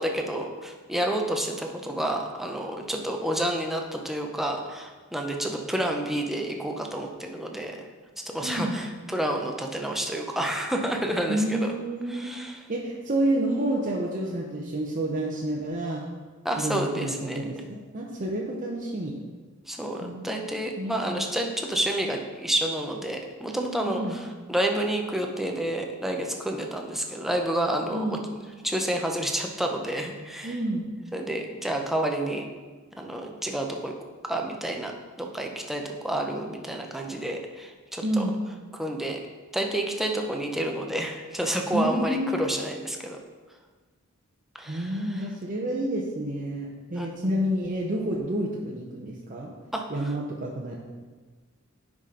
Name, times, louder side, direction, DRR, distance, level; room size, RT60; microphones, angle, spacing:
voice 1, 0.0-7.9 8.2-11.7 12.1-12.6 16.4-17.6 19.7-28.2 28.6-30.6 31.1-32.5 33.0-33.9 34.2-34.9 35.2-38.2 38.7-39.2 39.5-43.2 44.6-45.3 46.9-47.4 49.7-50.1, right 1 dB, ahead, 2 dB, 0.7 m, -29 dB
voice 2, 8.4-8.8 11.3-12.4 12.7-16.0 16.6-19.1 20.0-20.3 20.8-21.2 23.9-24.2 27.9-28.2 30.4-30.8 38.0-38.4 41.7-42.3 44.7-49.5 49.9-50.8, right 1 dB, 40° right, -3 dB, 0.8 m, -29 dB
9.8 x 5.0 x 3.8 m, 1.4 s
head